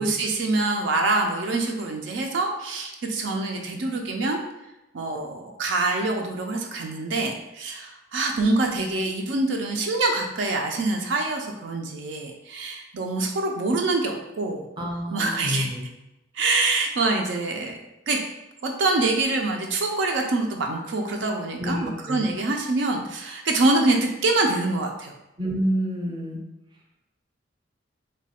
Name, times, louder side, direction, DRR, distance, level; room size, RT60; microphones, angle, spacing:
voice 1, 0.0-4.4 4.9-14.7 15.1-15.7 16.3-17.8 18.1-18.2 18.6-25.1, right 2 dB, 70° right, 2 dB, 0.4 m, -25 dB
voice 2, 14.8-15.9 21.6-22.3 25.4-26.4, equal, 25° right, -1 dB, 0.6 m, -28 dB
3.2 x 2.3 x 4.2 m, 0.96 s
head